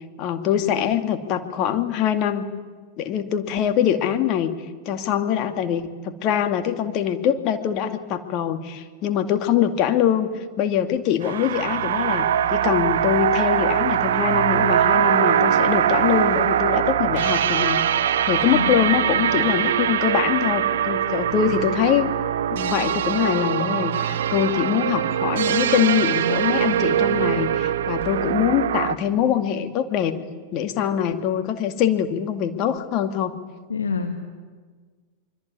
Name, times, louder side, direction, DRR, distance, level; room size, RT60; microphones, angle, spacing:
voice 1, 0.2-2.5 3.0-4.5 4.9-17.8 18.2-22.1 22.5-30.2 30.5-33.3, left 9 dB, 40° left, 7 dB, 2.3 m, -23 dB
sound 1, 11.2-29.0, right 9 dB, 60° right, 0.8 m, -22 dB
voice 2, 18.5-18.8 33.7-34.2, left 4 dB, 70° left, 5 dB, 2.0 m, -26 dB
25.0 x 23.5 x 9.6 m, 1.5 s
figure-of-eight pair, 90°, 0 cm